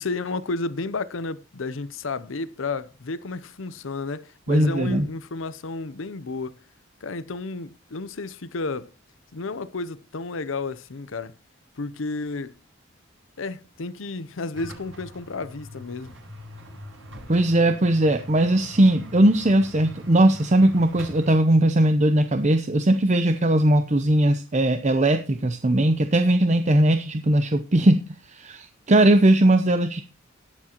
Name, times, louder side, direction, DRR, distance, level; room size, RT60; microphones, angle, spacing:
voice 1, 0.0-6.6 7.0-8.9 9.3-11.3 11.8-12.6 13.4-16.1, left 3 dB, 75° left, 0.7 m, -32 dB
voice 2, 4.5-5.1 17.3-30.0, right 1 dB, 35° right, 0.7 m, -19 dB
sound 1, 14.5-21.3, left 1 dB, 70° right, 7.0 m, -42 dB
19.5 x 7.3 x 2.9 m
head